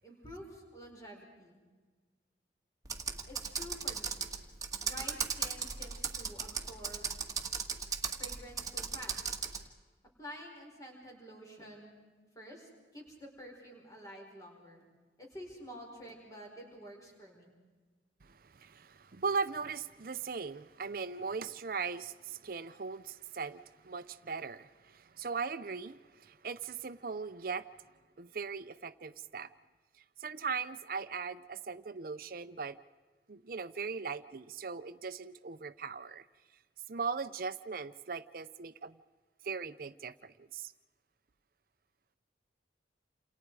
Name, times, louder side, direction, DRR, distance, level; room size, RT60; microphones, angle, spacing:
voice 1, 0.0-1.6 3.3-4.3 4.8-7.1 8.2-9.3 10.2-11.9 12.3-14.9 15.2-17.5, equal, 20° left, 4.8 m, -49 dB
Computer keyboard, 2.9-9.6, right 6 dB, 20° right, 1.8 m, -37 dB
voice 2, 18.2-27.7 28.2-29.5 30.2-32.8 33.3-36.2 36.9-39.0 39.4-40.7, right 5 dB, 50° right, 0.6 m, -39 dB
29.0 x 28.0 x 4.8 m
head